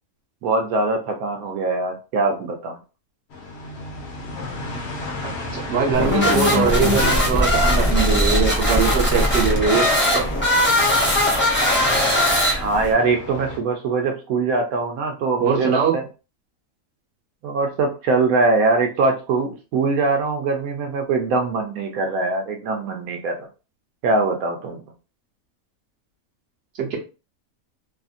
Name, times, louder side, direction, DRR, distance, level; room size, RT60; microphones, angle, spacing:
voice 1, 0.4-2.8 12.5-16.0 17.4-23.4 24.0-24.8, right 3 dB, 85° right, 3 dB, 1.1 m, -22 dB
sound 1, 3.3-13.6, left 2 dB, 60° left, 0.9 m, -33 dB
voice 2, 5.2-9.9 10.1-10.3 15.4-15.9 26.8-27.0, right 5 dB, 60° right, -2 dB, 1.1 m, -22 dB
sound 2, 5.9-12.9, left 1 dB, 20° left, 0.3 m, -19 dB
2.8 x 2.5 x 2.4 m, 0.32 s
omnidirectional pair, 1.5 m